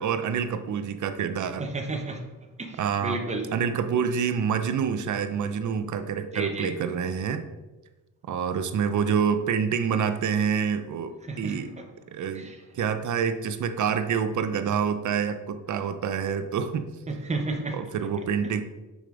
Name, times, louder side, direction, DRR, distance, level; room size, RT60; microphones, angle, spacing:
voice 1, 0.0-1.7 2.8-3.2 3.5-7.4 8.3-11.7 12.1-16.9 17.7-18.6, right 7 dB, 55° right, 9 dB, 0.7 m, -27 dB
voice 2, 1.6-2.2 2.6-3.5 6.3-6.7 11.3-11.6 12.3-12.5 17.1-17.8, right 2 dB, 20° right, 3 dB, 1.0 m, -31 dB
6.5 x 5.1 x 3.9 m, 1.1 s
cardioid pair, 90°, 35 cm